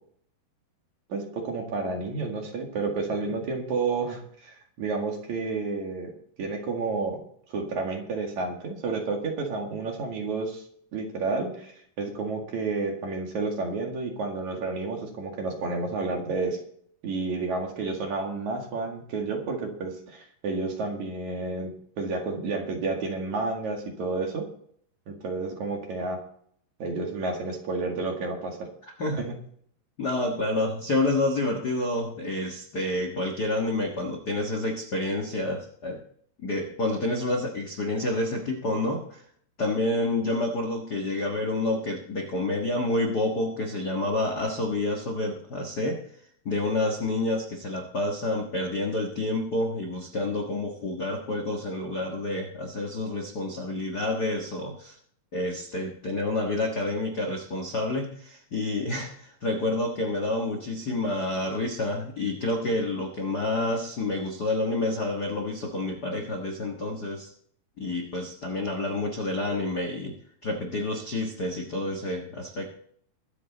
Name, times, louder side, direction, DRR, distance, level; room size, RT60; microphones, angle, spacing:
voice 1, 1.1-6.1 6.4-7.2 7.5-10.6 10.9-11.7 12.0-16.6 17.0-24.4 25.1-26.2 26.8-28.6 29.2-29.3, right 3 dB, 55° right, 2 dB, 3.2 m, -30 dB
voice 2, 30.0-36.0 36.4-39.2 39.6-46.0 46.4-55.0 55.3-67.3 67.8-70.1 70.4-72.7, left 2 dB, 60° left, 2 dB, 1.0 m, -28 dB
22.0 x 8.1 x 4.1 m, 0.63 s
omnidirectional pair, 4.2 m